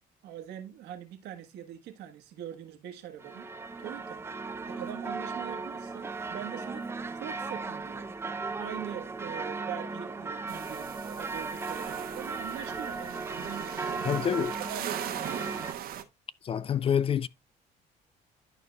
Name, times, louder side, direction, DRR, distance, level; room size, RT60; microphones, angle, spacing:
voice 1, 0.2-3.5 3.8-4.2 4.6-6.8 7.2-8.1 8.6-14.2 14.6-15.5, right 10 dB, 85° right, 1.4 m, -42 dB
sound 1, 3.2-15.7, right 4 dB, 15° right, 0.6 m, -37 dB
sound 2, 10.5-16.0, right 10 dB, 60° right, 1.0 m, -40 dB
voice 2, 14.0-14.6 16.4-17.3, left 8 dB, 35° left, 0.3 m, -27 dB
12.0 x 4.6 x 2.3 m
cardioid pair, 110°, 17 cm